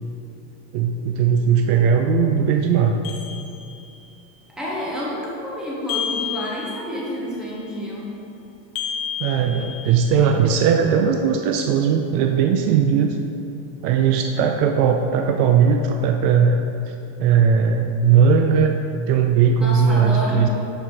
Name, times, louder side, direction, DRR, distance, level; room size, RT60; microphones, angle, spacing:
voice 1, 0.7-2.9 9.2-13.2 13.8-16.6 16.9-17.0 17.2-18.7 19.1-20.5, right 6 dB, 80° right, 4 dB, 0.6 m, -18 dB
sound 1, 3.0-4.0 5.9-7.2 8.7-10.3, left 9 dB, 45° left, 0.8 m, -31 dB
voice 2, 4.5-8.2 19.6-20.5, equal, ahead, -5 dB, 0.4 m, -29 dB
6.8 x 4.1 x 4.4 m, 2.8 s
cardioid pair, 175°, 45 cm